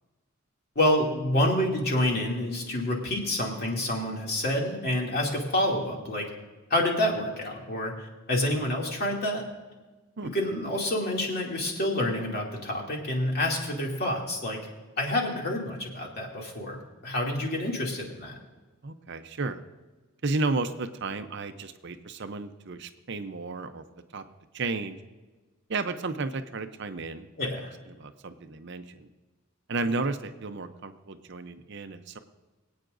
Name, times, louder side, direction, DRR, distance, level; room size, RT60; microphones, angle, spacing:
voice 1, 0.8-6.3 6.7-9.4 10.2-14.6 15.0-16.8 17.0-18.3 27.4-27.7, left 1 dB, 45° left, -1 dB, 2.5 m, -28 dB
voice 2, 18.8-19.6 20.2-23.8 24.1-24.2 24.5-25.0 25.7-29.1 29.7-32.2, right 3 dB, 55° right, 9 dB, 0.6 m, -33 dB
24.5 x 8.8 x 2.6 m, 1.2 s
head